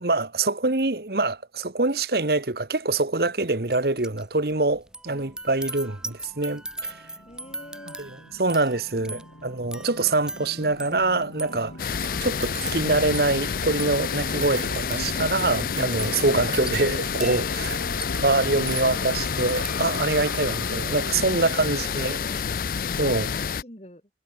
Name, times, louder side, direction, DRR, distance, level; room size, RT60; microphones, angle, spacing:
voice 1, 0.0-7.0 8.0-8.1 8.4-17.8 18.2-22.2 23.0-23.3, right 2 dB, 60° right, 1.4 m, -25 dB
sound 1, 3.7-4.2 4.5-20.3 20.7-21.0, right 2 dB, 5° right, 1.3 m, -39 dB
voice 2, 5.1-5.4 7.2-8.0 9.0-9.3 11.4-11.8 17.8-18.1 21.4-22.5 23.0-24.1, left 1 dB, 35° left, 6.5 m, -45 dB
sound 2, 5.8-21.0, left 2 dB, 90° left, 5.3 m, -40 dB
sound 3, 11.8-23.6, left 6 dB, 50° left, 0.5 m, -29 dB
head